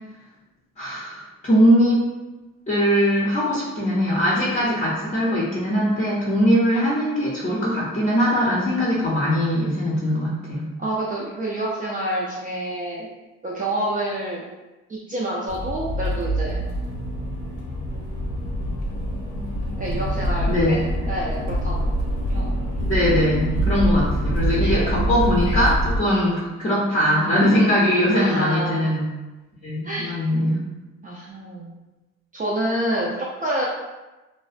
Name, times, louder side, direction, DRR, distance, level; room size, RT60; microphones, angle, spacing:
voice 1, 0.8-2.0 2.7-10.7 20.5-20.8 22.8-29.0 29.6-30.7, equal, 25° left, -6 dB, 0.6 m, -21 dB
voice 2, 10.8-13.1 13.4-14.5 14.9-16.6 19.8-20.5 21.1-21.9 22.3-22.9 23.4-24.0 24.6-24.9 28.1-28.9 29.8-30.2 31.0-31.7 32.3-33.7, right 1 dB, 25° right, -5 dB, 0.4 m, -28 dB
Accelerating revving vroom, 15.5-26.0, equal, 80° left, 0.7 m, -25 dB
2.3 x 2.1 x 2.4 m, 1.1 s
cardioid pair, 90°, 30 cm